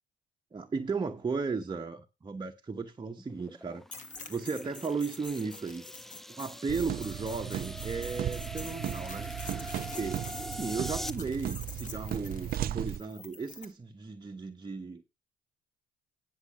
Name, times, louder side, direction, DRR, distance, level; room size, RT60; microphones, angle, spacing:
voice 1, 0.5-3.8 4.3-5.8 6.4-9.3 9.9-15.0, right 4 dB, 25° right, 1.0 m, -35 dB
sound 1, 3.1-11.1, equal, ahead, 0.4 m, -43 dB
sound 2, 3.9-13.7, left 4 dB, 40° left, 2.2 m, -47 dB
sound 3, 6.7-13.0, right 12 dB, 55° right, 0.5 m, -36 dB
9.8 x 6.4 x 5.0 m
supercardioid pair, 70°, 19 cm